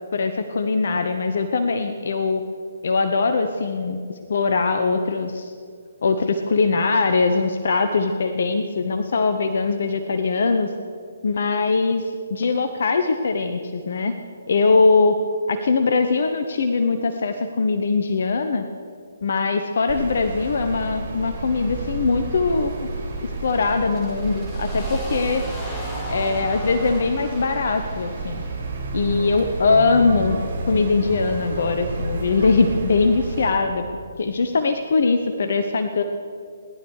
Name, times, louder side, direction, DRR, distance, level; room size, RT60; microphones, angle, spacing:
voice 1, 0.1-2.4 2.8-4.0 4.3-5.5 6.0-10.7 11.2-14.1 14.5-15.2 15.5-18.7 19.2-22.9 23.2-25.4 26.1-28.4 28.9-30.4 30.7-33.8 34.2-36.0, left 4 dB, 55° left, 7 dB, 1.0 m, -21 dB
sound 1, 19.9-33.5, right 3 dB, 50° right, 4.0 m, -31 dB
sound 2, 20.1-29.8, equal, 10° left, 2.9 m, -38 dB
18.0 x 11.5 x 6.5 m, 2.2 s
figure-of-eight pair, 135°, 0 cm